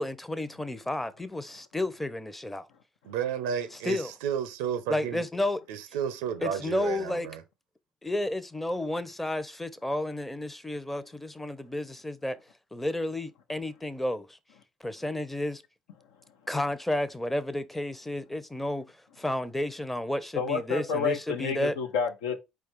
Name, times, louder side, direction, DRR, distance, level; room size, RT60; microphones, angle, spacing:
voice 1, 0.0-2.7 3.8-4.1 4.9-5.6 6.4-7.3 8.0-12.4 12.7-14.4 14.8-15.6 16.5-21.8, left 1 dB, 10° left, 0.7 m, -31 dB
voice 2, 3.0-5.2 5.7-7.4, right 8 dB, 75° right, 0.6 m, -32 dB
voice 3, 20.3-22.4, left 5 dB, 75° left, 0.8 m, -29 dB
4.7 x 2.3 x 4.5 m
hypercardioid pair, 55°, 2 cm